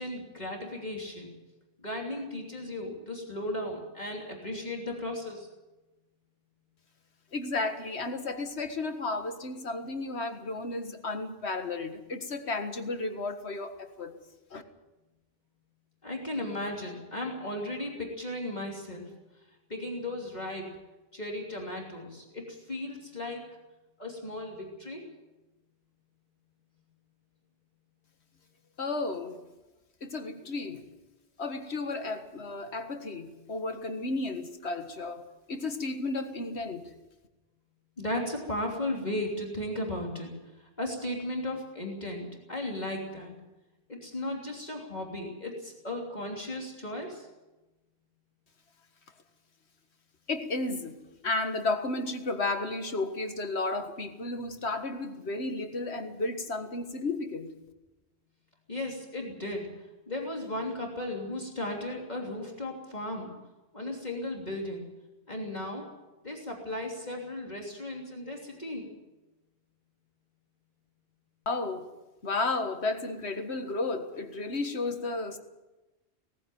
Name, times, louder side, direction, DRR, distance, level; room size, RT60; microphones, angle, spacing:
voice 1, 0.0-1.3 1.8-5.5 16.0-19.1 19.7-20.8 21.1-23.5 24.0-25.1 38.0-40.3 40.6-43.3 43.9-47.3 58.7-59.7 60.1-63.3 63.7-64.9 65.3-65.9 66.2-68.9, left 1 dB, 40° left, 3.2 m, -36 dB
voice 2, 7.3-14.1 14.5-14.6 28.8-29.4 30.0-30.9 31.4-36.9 50.3-57.5 71.5-71.9 72.2-75.4, left 3 dB, 75° left, 2.0 m, -33 dB
19.0 x 15.0 x 9.3 m
omnidirectional pair, 1.1 m